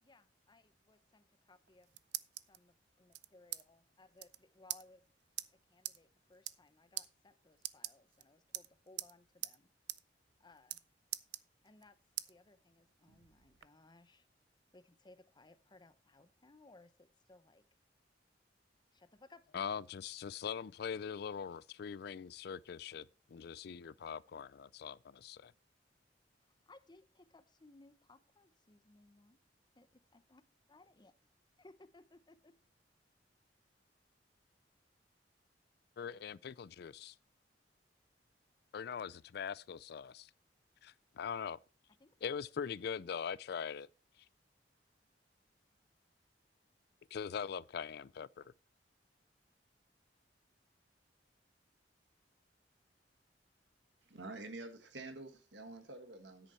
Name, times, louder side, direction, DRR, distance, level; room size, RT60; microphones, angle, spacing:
voice 1, 0.0-1.9 2.5-5.1 5.7-9.7 10.4-10.8 11.6-12.0 12.3-14.3 14.7-17.6 18.9-19.5 26.7-29.4 29.7-30.4 30.7-31.1 31.6-32.6 42.0-42.3, left 2 dB, 25° left, 0.7 m, -63 dB
sound 1, 1.6-2.6 3.1-3.6 3.9-4.0 4.2-4.4 4.7-4.8 5.4-5.5 5.9-6.0 6.3-6.7 7.0-7.1 7.6-8.2 8.5-9.1 9.4-9.6 9.9-10.0 10.3-10.8 11.1-11.8 12.2-12.3 12.8-13.7, right 15 dB, 65° right, 0.5 m, -42 dB
voice 2, 19.5-25.5 36.0-37.1 38.7-40.3 40.8-41.6 42.2-43.9 47.1-48.5, left 7 dB, 60° left, 0.4 m, -42 dB
voice 3, 54.1-56.5, right 2 dB, 80° right, 1.7 m, -48 dB
10.0 x 8.2 x 4.3 m
head